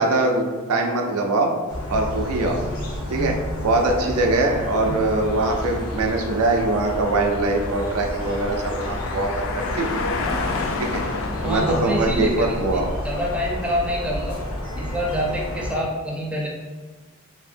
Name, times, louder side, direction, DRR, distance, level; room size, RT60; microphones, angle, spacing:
voice 1, 0.0-1.5 1.9-2.6 3.1-3.3 3.6-10.0 10.8-11.0 11.4-12.9, right 2 dB, 85° right, 2 dB, 0.5 m, -22 dB
sound 1, 1.7-15.7, left 1 dB, 80° left, 0.7 m, -31 dB
sound 2, 3.6-12.6, left 3 dB, 60° left, 0.3 m, -32 dB
voice 2, 11.3-14.4 14.7-16.5, equal, 5° right, -4 dB, 0.4 m, -26 dB
2.7 x 2.7 x 2.5 m, 1.3 s
head